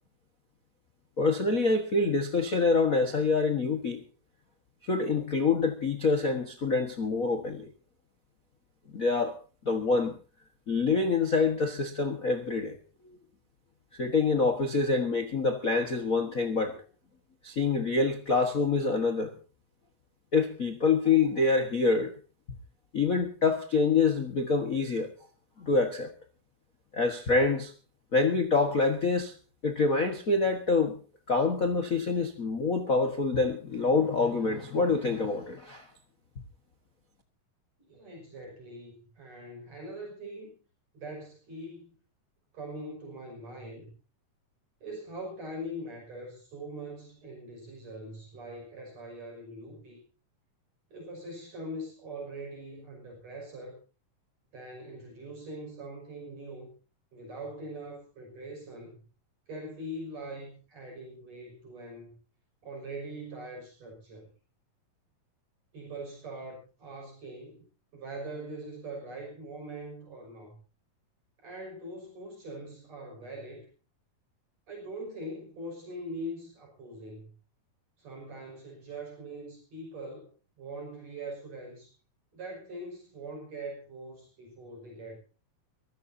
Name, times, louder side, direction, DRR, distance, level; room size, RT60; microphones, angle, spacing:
voice 1, 1.2-4.0 4.8-7.7 8.9-9.4 9.6-10.1 10.7-12.8 13.0-13.2 14.0-16.8 17.4-19.3 20.3-22.1 22.9-25.1 25.6-26.1 26.9-27.7 28.1-29.3 29.6-31.0 31.3-35.9, left 4 dB, 65° left, 7 dB, 0.8 m, -26 dB
voice 2, 37.9-40.5 40.9-42.0 42.5-43.9 44.8-50.0 50.9-53.8 54.5-56.7 57.1-59.0 59.5-62.1 62.6-64.3 65.7-67.7 67.9-70.6 71.4-73.7 74.7-77.3 78.0-80.3 80.6-81.9 82.3-85.2, right 1 dB, 50° right, 0 dB, 7.0 m, -42 dB
24.0 x 15.5 x 2.7 m, 0.36 s
omnidirectional pair, 4.0 m